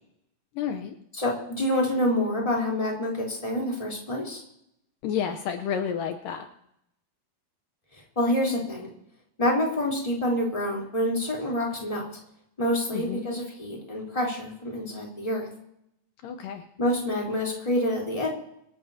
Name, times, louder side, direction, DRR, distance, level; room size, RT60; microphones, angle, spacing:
voice 1, 0.6-0.9 5.0-6.5 12.9-13.3 16.2-16.6, left 8 dB, 75° left, 7 dB, 2.4 m, -30 dB
voice 2, 1.1-4.4 8.1-8.9 9.4-12.0 12.6-15.5 16.8-18.3, left 1 dB, 10° left, -2 dB, 3.3 m, -27 dB
26.0 x 14.0 x 2.8 m, 0.77 s
omnidirectional pair, 4.1 m